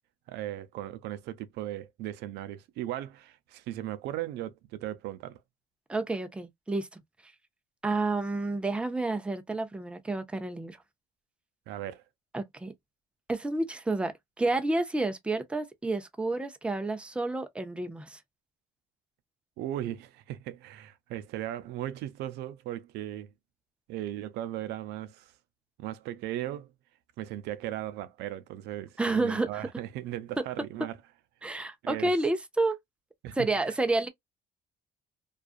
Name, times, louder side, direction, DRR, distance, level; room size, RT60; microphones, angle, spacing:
voice 1, 0.3-5.4 11.7-12.0 19.6-23.3 23.9-25.3 25.8-26.7 27.2-31.0 31.8-32.1 33.2-33.8, right 13 dB, 85° right, 0.4 m, -37 dB
voice 2, 5.9-7.0 7.8-10.8 12.3-12.7 13.3-18.2 29.0-29.6 31.4-32.8 33.4-34.1, right 2 dB, 5° right, 0.5 m, -30 dB
2.4 x 2.3 x 2.3 m
cardioid pair, 110°, 17 cm